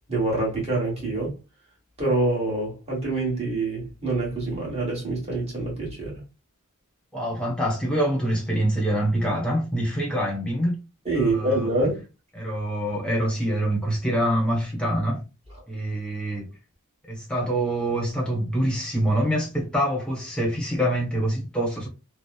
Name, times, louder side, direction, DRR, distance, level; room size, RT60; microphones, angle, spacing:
voice 1, 0.1-1.3 2.0-6.2 11.0-12.0, right 2 dB, 30° right, 1.3 m, -26 dB
voice 2, 7.1-10.8 11.1-11.7 12.3-15.2 15.7-16.5 17.1-21.9, right 1 dB, 5° left, 1.0 m, -25 dB
3.0 x 2.1 x 2.3 m
head